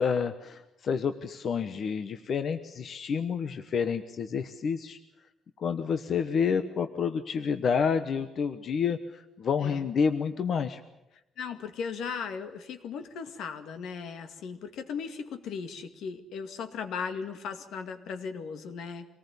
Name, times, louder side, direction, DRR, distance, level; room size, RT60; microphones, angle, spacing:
voice 1, 0.0-5.0 5.6-10.8, left 6 dB, 45° left, 8 dB, 1.1 m, -29 dB
voice 2, 11.4-19.1, left 6 dB, 80° left, 7 dB, 2.2 m, -37 dB
26.0 x 19.0 x 8.4 m, 0.90 s
cardioid pair, 155°, 0 cm